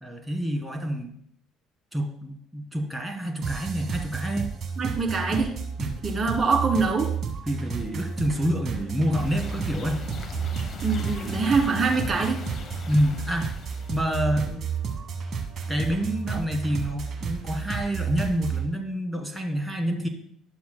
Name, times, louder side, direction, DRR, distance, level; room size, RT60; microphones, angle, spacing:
voice 1, 0.0-1.1 1.9-4.5 5.8-6.0 7.5-10.0 12.9-13.5 13.9-14.6 15.7-20.1, equal, 5° right, 3 dB, 1.8 m, -27 dB
sound 1, 3.4-18.7, right 6 dB, 45° right, 1.6 m, -32 dB
voice 2, 4.8-5.5 6.0-7.1 10.8-12.4, right 4 dB, 25° right, -2 dB, 2.8 m, -24 dB
sound 2, 9.2-14.2, left 3 dB, 40° left, 1.1 m, -38 dB
12.0 x 7.0 x 2.2 m, 0.65 s
hypercardioid pair, 55°, 0 cm